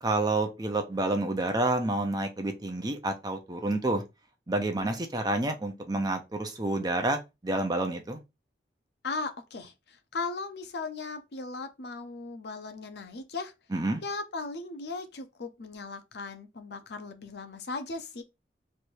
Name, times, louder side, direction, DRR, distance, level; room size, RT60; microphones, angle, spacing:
voice 1, 0.0-4.0 4.5-8.2 13.7-14.0, right 2 dB, 20° right, 0.6 m, -29 dB
voice 2, 9.0-13.5 14.0-18.2, left 3 dB, 65° left, 0.6 m, -37 dB
3.2 x 2.6 x 4.4 m
head